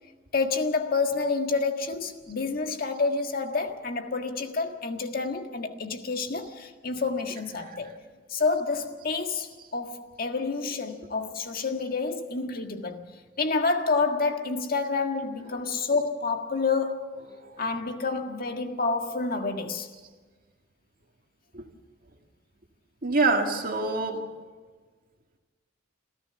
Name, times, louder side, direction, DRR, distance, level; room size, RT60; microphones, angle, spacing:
voice 1, 0.3-7.9 8.3-13.1 13.4-17.2 17.6-19.9, left 4 dB, 50° left, 1.7 m, -28 dB
voice 2, 23.0-24.3, right 3 dB, 50° right, 2.0 m, -26 dB
27.5 x 14.0 x 6.9 m
head